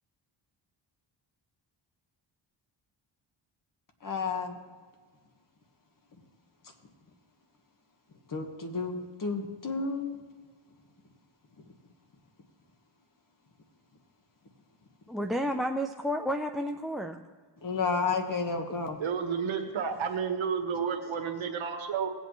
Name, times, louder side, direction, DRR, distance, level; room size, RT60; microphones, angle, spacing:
voice 1, 4.0-4.6 8.3-10.3 17.6-19.0, left 4 dB, 40° left, 4 dB, 1.5 m, -31 dB
voice 2, 15.1-17.2, equal, ahead, 3 dB, 0.4 m, -31 dB
voice 3, 19.0-22.1, right 6 dB, 75° right, 5 dB, 1.5 m, -31 dB
18.0 x 8.2 x 3.1 m, 1.5 s
cardioid pair, 100°, 47 cm